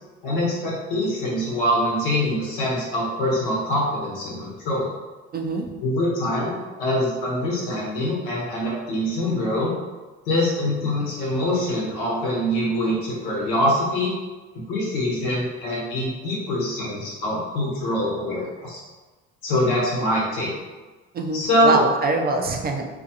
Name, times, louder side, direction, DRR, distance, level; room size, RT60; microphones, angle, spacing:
voice 1, 0.2-4.9 5.8-9.7 10.2-14.1 14.7-18.8 19.4-20.5 21.3-21.8, left 1 dB, 85° left, -5 dB, 1.1 m, -24 dB
voice 2, 5.3-5.7 21.1-22.9, right 2 dB, 30° right, 3 dB, 0.4 m, -24 dB
2.5 x 2.3 x 2.6 m, 1.3 s
hypercardioid pair, 70°, 32 cm